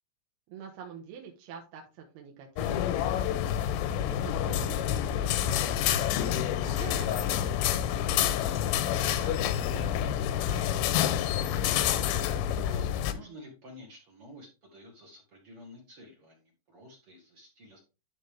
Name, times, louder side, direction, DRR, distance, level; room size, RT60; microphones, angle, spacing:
voice 1, 0.5-11.9, right 7 dB, 70° right, 1 dB, 2.8 m, -47 dB
sound 1, 2.6-13.1, left 10 dB, 85° left, 2.8 m, -28 dB
voice 2, 6.6-7.0 12.7-17.8, equal, 55° right, 0 dB, 1.6 m, -50 dB
12.0 x 4.0 x 3.5 m, 0.29 s
omnidirectional pair, 5.3 m